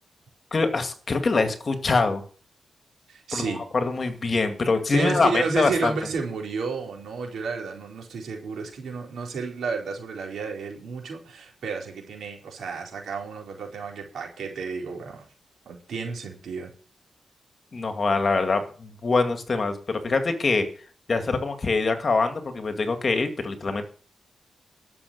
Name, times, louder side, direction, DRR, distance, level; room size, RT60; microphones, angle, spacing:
voice 1, 0.5-2.2 3.3-3.4 3.7-5.9 17.7-20.7 21.1-23.8, left 3 dB, 45° left, 7 dB, 2.2 m, -24 dB
voice 2, 3.1-3.6 4.9-15.3 15.7-16.7, right 4 dB, 85° right, 0 dB, 4.6 m, -31 dB
12.5 x 7.0 x 8.2 m, 0.42 s
cardioid pair, 100°, 0 cm